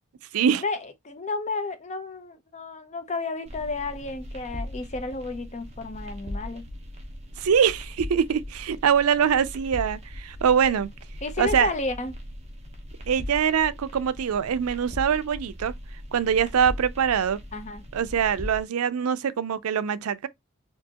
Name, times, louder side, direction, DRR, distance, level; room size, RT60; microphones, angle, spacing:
voice 1, 0.6-6.6 10.6-10.7 11.2-12.2 17.5-17.8, left 3 dB, 30° left, 0.6 m, -32 dB
sound 1, 3.5-18.6, left 1 dB, 30° right, 0.9 m, -39 dB
voice 2, 7.4-10.9 11.4-11.7 13.1-15.7 16.1-17.4 17.9-20.3, right 7 dB, 90° right, 0.4 m, -23 dB
4.4 x 2.7 x 2.8 m
head